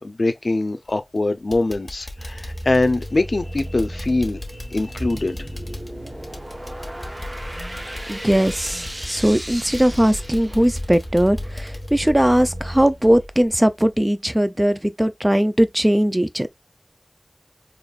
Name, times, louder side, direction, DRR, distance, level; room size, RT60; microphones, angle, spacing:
voice 1, 0.0-5.5, left 2 dB, 80° left, 0.5 m, -23 dB
sound 1, 0.8-1.2 1.5-13.1 13.4-13.5 14.0-14.1, left 1 dB, 20° left, 1.2 m, -38 dB
sound 2, 2.2-13.4, equal, 70° right, 1.4 m, -36 dB
sound 3, 4.7-11.0, right 1 dB, 35° right, 0.9 m, -36 dB
voice 2, 8.1-16.5, equal, 15° right, 0.4 m, -19 dB
4.2 x 3.0 x 2.3 m
wide cardioid pair, 55°, 0 cm